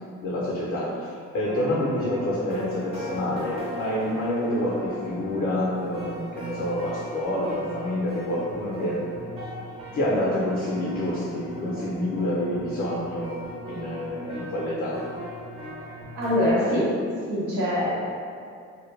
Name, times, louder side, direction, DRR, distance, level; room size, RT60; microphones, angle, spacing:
voice 1, 0.2-9.0 9.9-13.3 13.7-15.0, left 1 dB, 50° left, -5 dB, 0.5 m, -27 dB
sound 1, 1.4-16.5, equal, 20° right, 0.6 m, -38 dB
voice 2, 16.1-16.9 17.3-18.1, left 1 dB, 90° right, -7 dB, 0.8 m, -23 dB
2.1 x 2.1 x 3.1 m, 2.4 s
cardioid pair, 110°, 30 cm